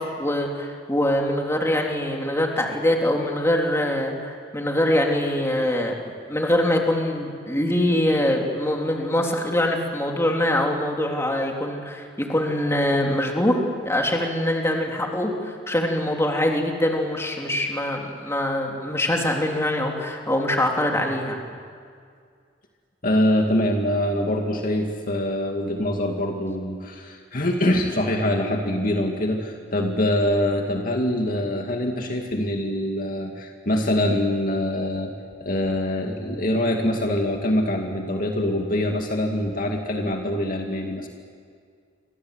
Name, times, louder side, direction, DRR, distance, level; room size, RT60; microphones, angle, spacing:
voice 1, 0.0-5.9 6.3-21.4, left 1 dB, 15° left, 1 dB, 3.4 m, -23 dB
voice 2, 23.0-35.1 35.4-41.1, left 1 dB, 50° left, 2 dB, 2.3 m, -24 dB
29.5 x 25.0 x 8.1 m, 2.1 s
head